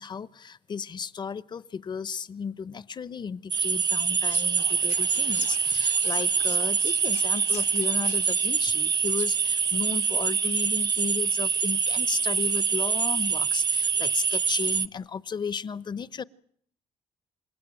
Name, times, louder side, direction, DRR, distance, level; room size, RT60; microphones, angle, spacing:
voice 1, 0.0-16.2, left 6 dB, 40° left, 17 dB, 0.9 m, -35 dB
sound 1, 3.5-14.9, right 6 dB, 35° right, 1.0 m, -25 dB
Whispering, 4.3-9.6, left 13 dB, 90° left, 4.4 m, -45 dB
28.5 x 16.5 x 9.0 m, 0.65 s
cardioid pair, 90°, 12 cm